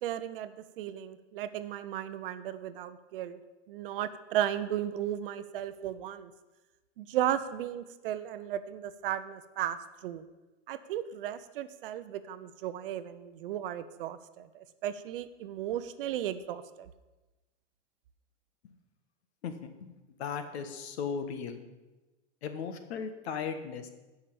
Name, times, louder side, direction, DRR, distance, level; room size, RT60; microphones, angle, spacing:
voice 1, 0.0-3.4 3.7-6.3 7.0-9.8 10.0-10.2 10.7-16.9, right 11 dB, 50° right, 12 dB, 0.6 m, -35 dB
voice 2, 19.4-19.9 20.2-21.6 22.4-23.9, left 6 dB, 60° left, 8 dB, 1.5 m, -37 dB
10.0 x 5.8 x 8.5 m, 1.1 s
supercardioid pair, 160°, 36 cm